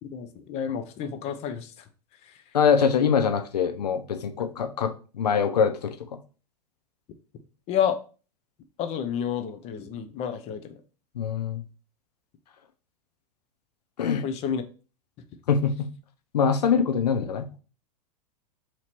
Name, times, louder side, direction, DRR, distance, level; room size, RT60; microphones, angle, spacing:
voice 1, 0.0-1.8 2.2-2.4 7.7-8.0 8.8-10.8 14.2-14.6, left 8 dB, 30° left, 0.5 m, -30 dB
voice 2, 2.5-5.9 11.2-11.6 14.0-14.2 15.5-15.9 16.3-17.5, left 6 dB, 75° left, 0.6 m, -23 dB
2.9 x 2.8 x 4.3 m
figure-of-eight pair, 95°, 21 cm